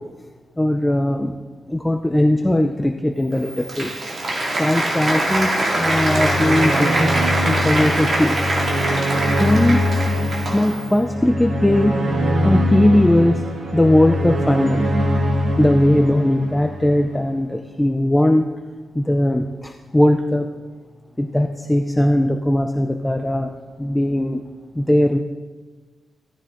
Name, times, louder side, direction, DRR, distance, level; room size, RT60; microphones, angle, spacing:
voice 1, 0.6-1.4 1.7-3.9 4.6-7.1 7.5-8.4 9.4-9.8 10.5-12.0 12.4-13.4 13.7-14.9 15.6-18.5 18.9-20.5 21.2-23.5 23.8-24.4 24.7-25.2, left 1 dB, 5° left, 4 dB, 0.5 m, -19 dB
Applause, 3.3-10.9, right 1 dB, 35° right, 2.2 m, -23 dB
sound 1, 5.7-17.1, equal, 55° right, 2.4 m, -22 dB
15.5 x 13.5 x 3.9 m, 1.3 s
wide cardioid pair, 180°, 0 cm